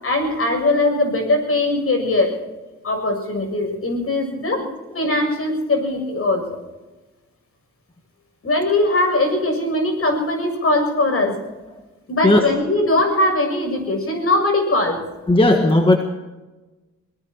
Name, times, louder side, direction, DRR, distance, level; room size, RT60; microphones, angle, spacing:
voice 1, 0.0-2.3 2.8-4.6 4.9-6.6 8.4-11.4 12.1-15.0, left 2 dB, 45° left, 4 dB, 7.4 m, -20 dB
voice 2, 15.3-16.0, left 1 dB, 15° left, 4 dB, 1.5 m, -15 dB
22.5 x 19.5 x 3.0 m, 1.2 s
cardioid pair, 80°, 31 cm